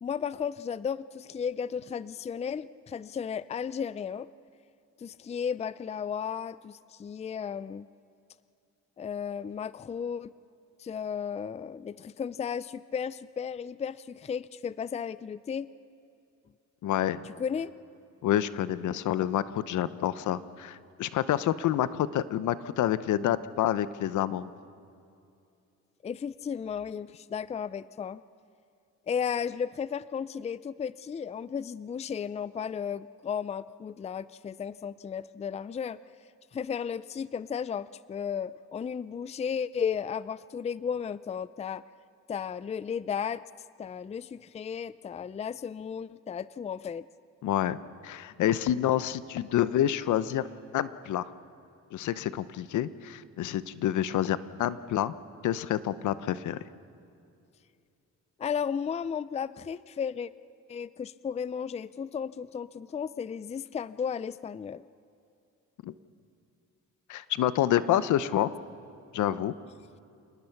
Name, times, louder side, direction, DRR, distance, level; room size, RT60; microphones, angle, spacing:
voice 1, 0.0-4.3 5.0-7.9 9.0-10.3 10.8-15.7 17.2-17.7 26.0-28.2 29.1-36.0 36.5-41.8 42.3-43.4 43.8-47.1 58.4-60.3 60.7-64.9, left 7 dB, 20° left, 17 dB, 0.4 m, -34 dB
voice 2, 16.8-17.2 18.2-24.5 47.4-47.8 48.0-50.5 50.7-51.3 51.9-55.1 55.4-56.6 65.8-65.9 67.1-68.5 69.1-69.5, left 11 dB, 75° left, 15 dB, 0.8 m, -28 dB
28.0 x 19.0 x 5.9 m, 2.5 s
cardioid pair, 90°, 30 cm